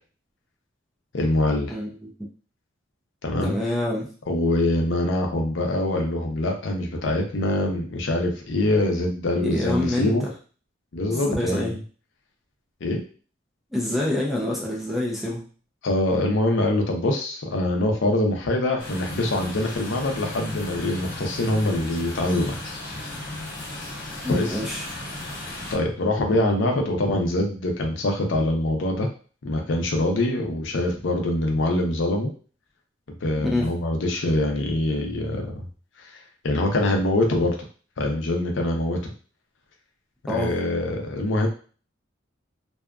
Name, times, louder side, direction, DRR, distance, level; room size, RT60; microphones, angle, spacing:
voice 1, 1.1-1.7 3.2-3.5 4.3-10.3 10.9-11.8 12.8-13.0 15.8-22.6 24.3-24.6 25.7-29.1 29.4-32.3 33.2-35.7 36.0-37.6 38.0-39.1 40.3-41.5, left 1 dB, 70° left, 2 dB, 0.5 m, -24 dB
voice 2, 1.7-2.1 3.4-4.1 9.3-10.3 11.1-11.8 13.7-15.5 24.2-24.9 33.4-33.7 40.3-40.5, left 1 dB, ahead, -3 dB, 0.4 m, -27 dB
sound 1, 18.8-25.7, left 2 dB, 45° left, 1.0 m, -35 dB
2.7 x 2.3 x 2.3 m, 0.39 s
head